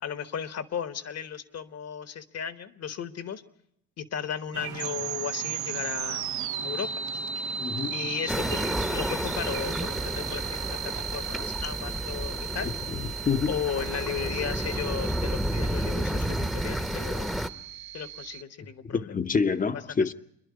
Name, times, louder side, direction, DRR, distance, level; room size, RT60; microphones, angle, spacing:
voice 1, 0.0-3.4 4.0-6.2 6.6-6.9 7.3-7.6 7.9-8.6 8.9-12.7 13.5-17.3 17.9-19.1 20.0-20.1, left 8 dB, 55° left, 1.3 m, -35 dB
sound 1, 4.5-11.0, right 10 dB, 85° right, 1.1 m, -41 dB
sound 2, 4.8-18.4, right 8 dB, 65° right, 0.8 m, -36 dB
voice 2, 7.6-8.1 12.6-13.5 18.8-20.1, left 5 dB, 25° left, 0.8 m, -28 dB
sound 3, 8.3-17.5, equal, ahead, 0.9 m, -31 dB
26.5 x 11.0 x 9.7 m
cardioid pair, 90°, 30 cm